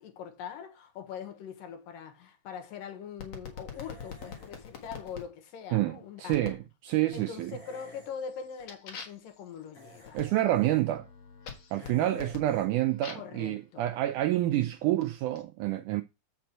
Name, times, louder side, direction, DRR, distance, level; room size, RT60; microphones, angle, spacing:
voice 1, 0.0-6.6 7.1-10.5 13.1-13.9, left 7 dB, 75° left, 2.9 m, -42 dB
sound 1, 3.2-5.3 6.3-6.7 7.1-7.6 8.0-13.4 14.2-15.4, left 6 dB, 50° left, 2.5 m, -46 dB
sound 2, 3.7-4.6 7.5-8.1 9.7-10.8 11.7-12.7, left 4 dB, 35° left, 5.3 m, -49 dB
voice 2, 5.7-7.6 10.1-11.1 11.7-16.0, right 15 dB, 85° right, 1.8 m, -28 dB
7.8 x 6.0 x 4.5 m
omnidirectional pair, 4.1 m